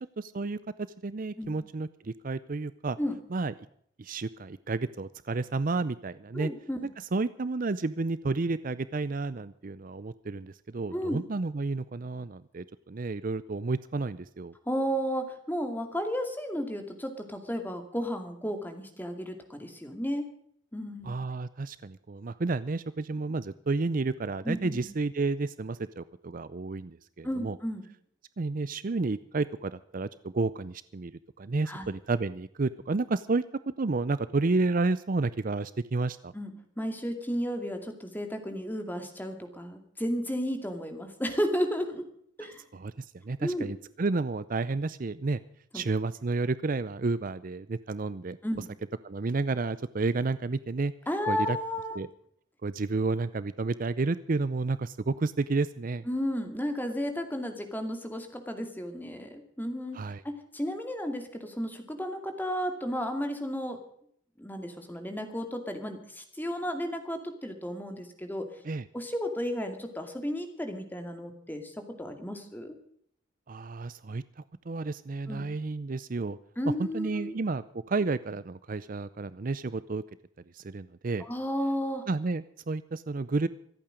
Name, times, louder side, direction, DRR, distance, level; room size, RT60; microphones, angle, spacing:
voice 1, 0.2-0.6 1.0-3.0 3.3-3.5 4.0-6.5 7.1-14.5 21.0-27.6 28.4-31.1 31.4-33.4 33.8-36.3 42.4-45.4 45.7-48.6 49.0-50.9 51.3-51.6 52.0-52.1 52.6-56.0 59.9-60.2 68.6-68.9 73.5-74.2 74.7-76.4 76.8-80.0 80.5-81.2 82.1-83.5, right 3 dB, 45° right, 15 dB, 0.5 m, -31 dB
voice 2, 6.3-6.8 10.9-11.2 14.7-20.3 20.7-21.1 24.4-24.9 27.2-27.8 31.7-31.9 36.3-42.0 42.4-42.6 43.4-43.7 45.7-45.8 48.4-48.7 51.1-52.0 56.1-63.8 64.4-68.5 68.9-72.8 75.3-75.4 76.6-77.3 81.2-82.0, equal, 10° left, 6 dB, 2.3 m, -33 dB
26.0 x 8.9 x 5.1 m, 0.66 s
head